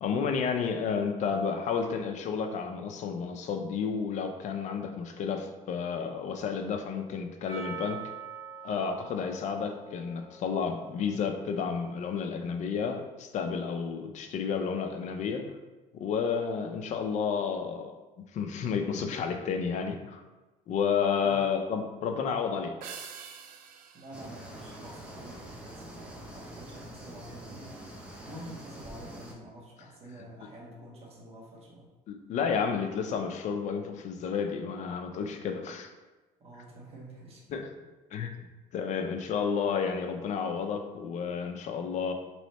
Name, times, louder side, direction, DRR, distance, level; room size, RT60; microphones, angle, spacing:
voice 1, 0.0-8.0 8.6-15.5 15.9-20.2 20.7-23.1 32.1-35.9 37.5-37.7 38.1-38.4 38.7-42.1, left 6 dB, 50° left, 5 dB, 0.5 m, -31 dB
Percussion, 7.5-12.0, right 5 dB, 30° left, 1.4 m, -45 dB
sound 1, 22.8-25.4, right 7 dB, 65° right, 0.4 m, -47 dB
voice 2, 23.9-27.8 28.2-31.9 36.4-37.4, right 1 dB, 40° right, -5 dB, 1.4 m, -48 dB
sound 2, 24.1-29.3, right 1 dB, 5° right, 0.7 m, -45 dB
3.1 x 3.1 x 4.1 m, 1.2 s
cardioid pair, 120°, 16 cm